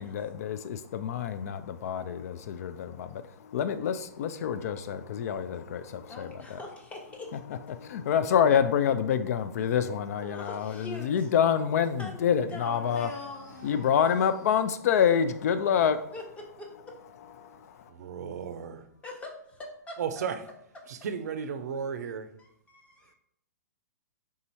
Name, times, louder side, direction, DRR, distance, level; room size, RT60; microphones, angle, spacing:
voice 1, 0.0-6.6 7.7-13.1 13.6-16.1 17.2-17.9, left 8 dB, 55° left, 11 dB, 0.3 m, -27 dB
sound 1, 4.8-7.6 8.0-8.4 8.6-8.7 9.1-12.4 12.8-19.3 20.2-21.2, left 1 dB, 80° left, 0.9 m, -55 dB
voice 2, 6.1-7.4 10.2-11.3 12.0-12.2 12.5-13.5 16.1-17.0 19.0-20.2 22.7-23.1, left 2 dB, 15° left, 1 dB, 0.9 m, -42 dB
voice 3, 17.9-18.9 20.0-20.5 20.9-22.3 23.0-23.1, right 7 dB, 60° right, 10 dB, 0.5 m, -35 dB
3.6 x 2.7 x 4.3 m, 0.70 s
hypercardioid pair, 125°, 10 cm